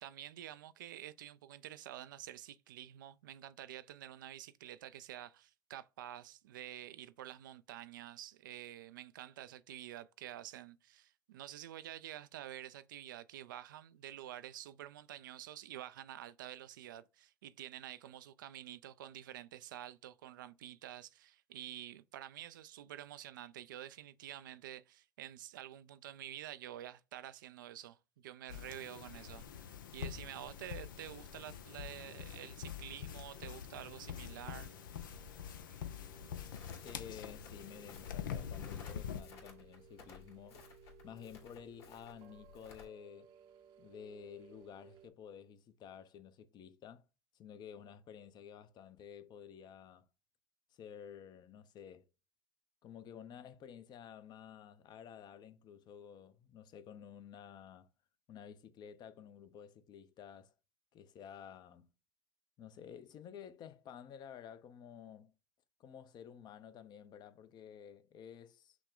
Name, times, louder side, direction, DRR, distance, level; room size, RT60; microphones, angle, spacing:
voice 1, 0.0-34.7, right 12 dB, 80° right, 0.4 m, -49 dB
sound 1, 28.5-39.2, left 8 dB, 85° left, 0.6 m, -45 dB
sound 2, 34.3-45.1, right 9 dB, 55° right, 0.7 m, -61 dB
Crackle, 36.5-42.8, left 6 dB, 60° left, 2.4 m, -57 dB
voice 2, 36.8-40.6 41.0-43.3 43.8-47.1 47.3-50.0 50.7-52.1 52.8-57.9 58.3-60.5 60.9-61.9 62.6-65.3 65.8-68.8, left 8 dB, 45° left, 0.7 m, -52 dB
6.1 x 2.2 x 3.7 m
hypercardioid pair, 85°, 10 cm